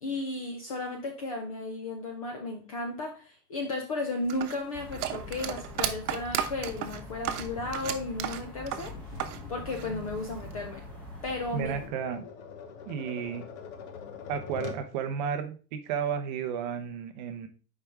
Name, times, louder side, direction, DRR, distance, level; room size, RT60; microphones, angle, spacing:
voice 1, 0.0-9.1 9.5-10.8 11.2-11.8, left 2 dB, 25° left, 3 dB, 0.4 m, -34 dB
sound 1, 4.3-9.4 9.7-10.5, right 10 dB, 70° right, 0.9 m, -33 dB
sound 2, 4.7-11.9, left 2 dB, 5° left, 1.5 m, -44 dB
Tap, 7.4-14.9, left 6 dB, 45° left, 1.0 m, -45 dB
voice 2, 11.5-12.2 12.9-13.5 14.3-17.5, right 7 dB, 30° right, 8 dB, 0.6 m, -33 dB
6.8 x 4.7 x 3.5 m, 0.37 s
supercardioid pair, 160°, 46 cm